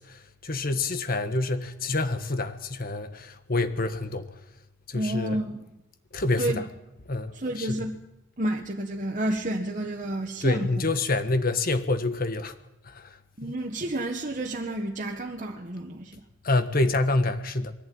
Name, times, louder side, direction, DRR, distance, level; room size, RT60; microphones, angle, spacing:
voice 1, 0.0-4.3 4.9-5.4 6.1-6.7 7.1-7.9 10.4-12.5 12.9-13.2 16.4-17.7, left 2 dB, 50° left, 1.5 m, -27 dB
voice 2, 4.9-5.6 6.4-6.6 7.3-8.0 8.4-10.7 13.4-16.2, right 1 dB, 40° right, 1.6 m, -30 dB
22.5 x 15.0 x 9.5 m
head